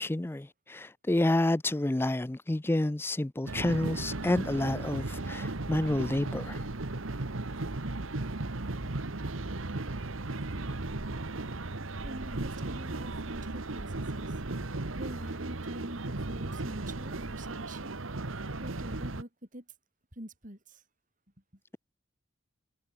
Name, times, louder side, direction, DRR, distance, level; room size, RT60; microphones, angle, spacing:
voice 1, 0.0-6.6, left 1 dB, 10° left, 0.4 m, -29 dB
sound 1, 3.5-19.2, right 2 dB, 85° right, 1.4 m, -36 dB
voice 2, 12.0-14.4 14.9-17.9 18.6-19.7 20.1-20.8, right 1 dB, 40° right, 7.1 m, -45 dB
head